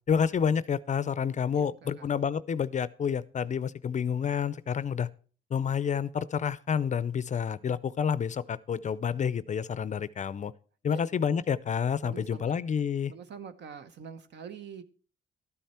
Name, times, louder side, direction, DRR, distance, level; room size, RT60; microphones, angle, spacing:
voice 1, 0.1-5.1 5.5-10.5 10.8-13.1, left 7 dB, 40° left, 0.5 m, -29 dB
voice 2, 1.5-2.1 10.9-11.0 12.0-12.6 13.1-14.8, right 7 dB, 60° right, 1.0 m, -44 dB
13.0 x 9.2 x 4.3 m
cardioid pair, 90°, 20 cm